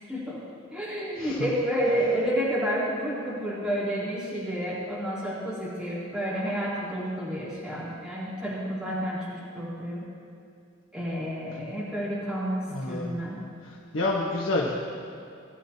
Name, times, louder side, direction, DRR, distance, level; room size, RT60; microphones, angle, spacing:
voice 1, 0.1-0.4 0.7-10.0 10.9-13.4, equal, 5° right, -10 dB, 3.0 m, -30 dB
voice 2, 12.7-13.1 13.6-14.9, left 2 dB, 80° left, -3 dB, 1.3 m, -29 dB
20.5 x 11.5 x 2.8 m, 2.5 s
head